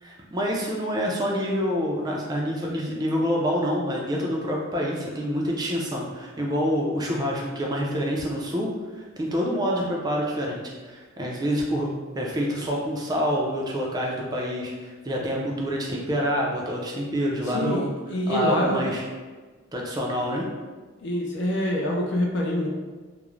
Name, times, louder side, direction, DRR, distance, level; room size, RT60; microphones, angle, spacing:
voice 1, 0.0-11.9 12.1-17.9 18.3-19.0 19.7-20.5, equal, 20° right, -2 dB, 0.3 m, -27 dB
voice 2, 17.5-18.9 21.0-22.7, equal, 55° left, -1 dB, 0.4 m, -25 dB
2.4 x 2.0 x 3.0 m, 1.4 s
head